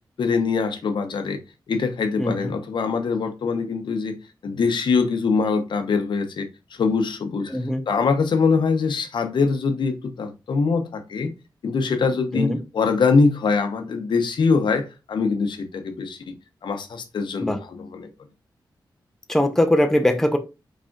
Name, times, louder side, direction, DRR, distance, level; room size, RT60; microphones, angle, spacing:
voice 1, 0.2-1.4 1.7-4.1 4.4-7.6 7.9-11.3 11.6-16.4 16.6-18.1, left 4 dB, 80° left, 0.8 m, -23 dB
voice 2, 7.5-7.8 12.3-12.6 17.4-17.6 19.3-20.4, left 1 dB, 5° left, 0.5 m, -20 dB
5.1 x 4.2 x 2.4 m
wide cardioid pair, 140°, 8 cm